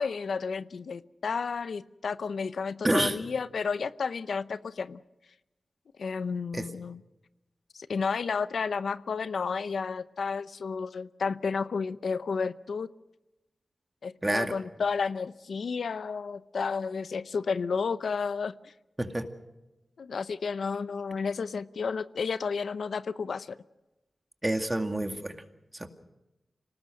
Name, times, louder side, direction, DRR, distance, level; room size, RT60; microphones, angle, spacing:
voice 1, 0.0-5.0 6.0-7.0 7.7-12.9 14.0-18.7 20.0-23.6, left 5 dB, 80° left, 14 dB, 0.7 m, -32 dB
voice 2, 2.8-3.2 6.5-6.7 14.2-14.5 19.0-19.3 24.4-25.4 25.7-25.9, right 1 dB, 20° right, 6 dB, 2.2 m, -28 dB
26.0 x 18.5 x 6.5 m, 0.99 s
wide cardioid pair, 75°, 0 cm